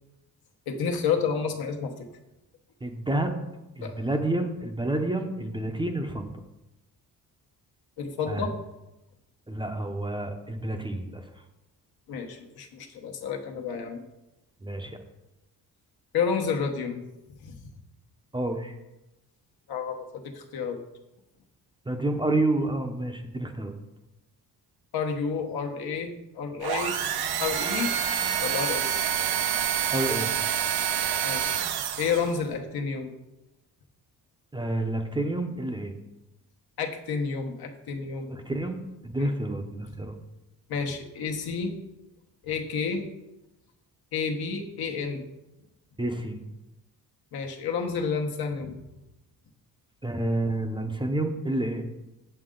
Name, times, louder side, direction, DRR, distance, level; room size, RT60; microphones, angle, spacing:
voice 1, 0.7-2.1 3.8-3.9 8.0-8.5 12.1-14.0 16.1-17.0 17.4-17.6 19.7-20.8 24.9-27.0 27.4-27.9 28.4-29.1 31.2-31.5 32.0-33.1 36.8-38.3 39.2-39.3 40.7-41.8 42.4-43.1 44.1-45.3 47.3-48.8, left 5 dB, 70° left, 3 dB, 1.2 m, -30 dB
voice 2, 2.8-3.4 3.8-6.3 8.3-8.4 9.5-11.2 14.6-15.0 18.3-18.7 21.9-23.7 29.9-30.3 34.5-35.9 38.3-40.2 46.0-46.4 50.0-51.9, right 2 dB, 10° right, 4 dB, 0.7 m, -29 dB
sound 1, 26.6-32.4, right 9 dB, 75° right, 0.8 m, -27 dB
7.8 x 7.4 x 3.8 m, 0.95 s
cardioid pair, 130°, 39 cm